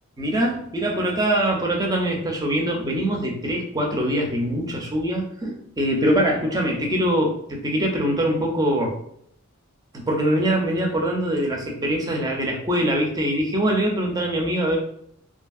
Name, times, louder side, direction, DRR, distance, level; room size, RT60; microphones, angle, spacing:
voice 1, 0.2-9.0 9.9-14.8, right 1 dB, 20° right, 0 dB, 0.5 m, -23 dB
2.7 x 2.6 x 2.3 m, 0.68 s
head